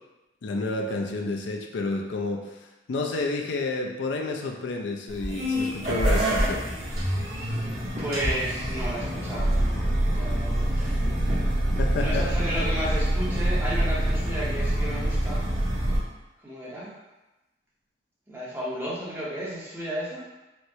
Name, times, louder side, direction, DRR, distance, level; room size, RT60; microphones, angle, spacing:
voice 1, 0.4-2.6 2.9-6.6 11.8-12.2, left 3 dB, 75° left, 1 dB, 0.4 m, -30 dB
sound 1, 5.1-16.0, right 1 dB, 55° right, 1.3 m, -26 dB
voice 2, 7.3-7.7 8.0-11.0 11.9-15.5 16.4-17.0 18.3-20.3, right 1 dB, 10° right, -8 dB, 0.7 m, -33 dB
4.4 x 2.0 x 2.7 m, 1.0 s
head